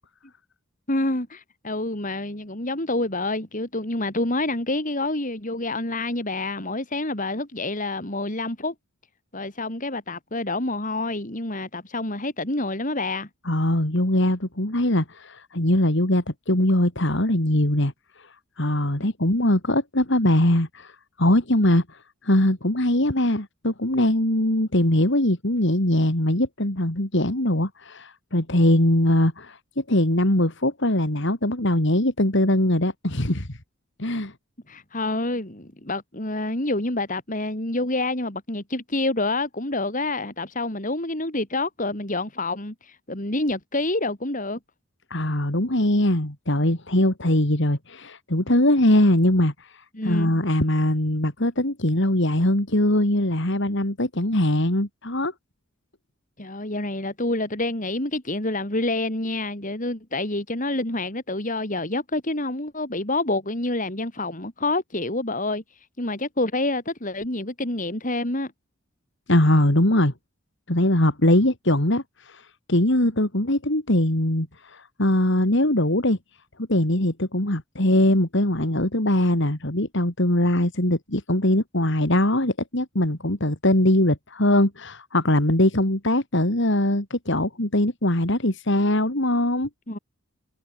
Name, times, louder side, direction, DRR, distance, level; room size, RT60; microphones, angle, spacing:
voice 1, 0.9-8.7 9.3-13.3 34.7-44.6 49.9-50.3 56.4-65.6 66.0-68.5 89.9-90.0, left 2 dB, 40° left, 3.7 m, -27 dB
voice 2, 13.4-17.9 18.2-18.3 18.6-33.6 34.0-34.3 45.1-55.3 69.3-70.1 70.7-76.2 76.7-89.7, left 1 dB, 55° left, 3.3 m, -21 dB
head